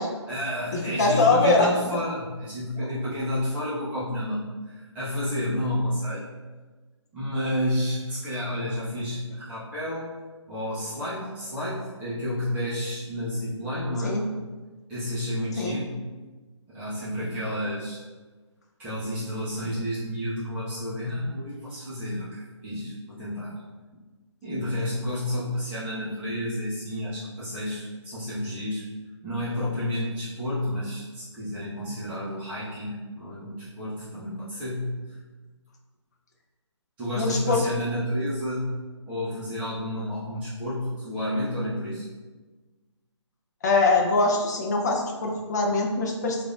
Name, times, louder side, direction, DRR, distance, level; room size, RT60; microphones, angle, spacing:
voice 1, 0.3-6.3 7.1-10.1 10.5-14.2 14.9-15.9 16.7-18.0 18.8-23.5 24.4-28.8 29.2-34.9 37.0-38.7 39.1-42.0, left 1 dB, 10° right, -11 dB, 0.6 m, -30 dB
voice 2, 1.0-1.7 14.0-14.2 15.6-15.8 37.2-37.6 43.6-46.4, left 3 dB, 35° left, 1 dB, 0.5 m, -22 dB
4.8 x 2.5 x 2.4 m, 1.3 s
figure-of-eight pair, 150°, 16 cm